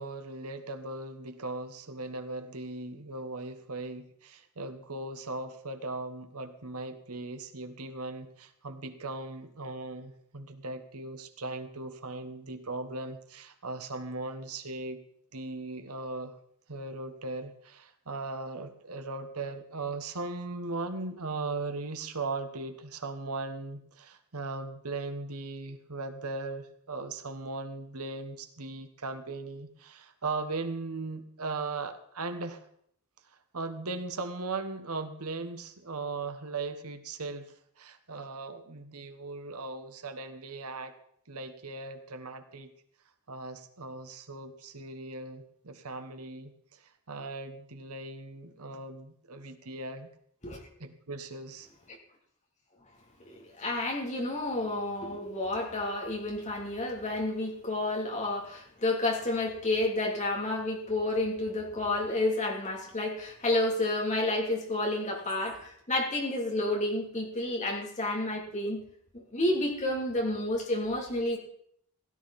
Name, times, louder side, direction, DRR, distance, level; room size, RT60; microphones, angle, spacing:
voice 1, 0.0-15.0 15.3-16.4 16.7-32.7 33.3-37.5 37.8-40.9 41.3-42.7 43.3-50.1 50.8-51.7, right 3 dB, 75° right, 8 dB, 1.3 m, -38 dB
voice 2, 53.2-68.8 69.1-71.4, left 2 dB, 35° left, -1 dB, 3.1 m, -30 dB
16.5 x 12.0 x 4.2 m, 0.67 s
head